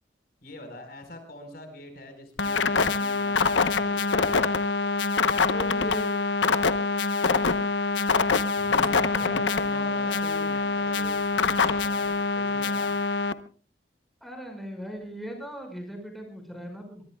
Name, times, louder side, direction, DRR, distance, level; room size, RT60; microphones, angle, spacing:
voice 1, 0.4-4.0 8.6-13.0, left 1 dB, 55° left, 6 dB, 4.6 m, -44 dB
sound 1, 2.4-13.3, left 4 dB, 85° left, 0.9 m, -25 dB
voice 2, 5.5-6.1 9.1-9.4 9.7-10.1 14.2-17.0, equal, ahead, 3 dB, 5.5 m, -38 dB
sound 2, 7.4-12.7, right 3 dB, 80° right, 4.1 m, -52 dB
24.0 x 23.0 x 2.3 m, 0.41 s
head